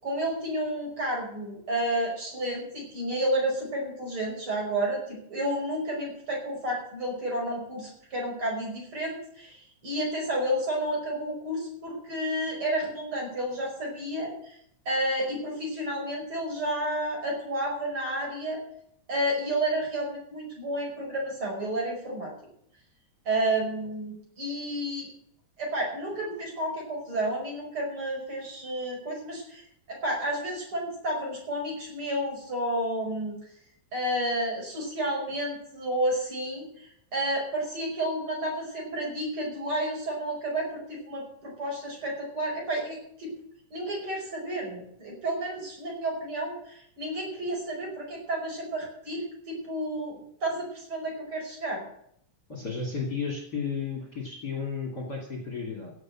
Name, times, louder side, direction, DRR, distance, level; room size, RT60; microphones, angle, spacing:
voice 1, 0.0-14.6 14.9-18.6 19.1-22.3 23.3-25.1 25.6-29.6 29.9-33.4 33.9-43.3 43.7-51.8, right 1 dB, 40° right, -1 dB, 6.0 m, -31 dB
voice 2, 52.5-55.9, left 5 dB, 35° left, 1 dB, 3.0 m, -33 dB
16.5 x 6.8 x 7.7 m, 0.67 s
omnidirectional pair, 3.5 m